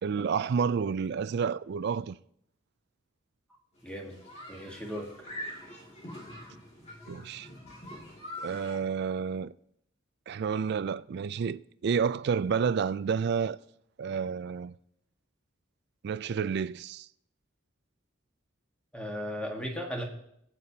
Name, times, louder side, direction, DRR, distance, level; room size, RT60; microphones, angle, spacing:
voice 1, 0.0-2.2 7.1-7.5 8.4-9.5 10.3-13.6 14.0-14.7 16.0-17.1, right 6 dB, 55° right, 0.3 m, -30 dB
sound 1, 3.8-8.8, left 1 dB, 30° left, 2.3 m, -44 dB
voice 2, 3.8-4.2 4.5-5.1 18.9-20.0, equal, 5° left, 1.5 m, -36 dB
22.5 x 8.4 x 2.8 m
head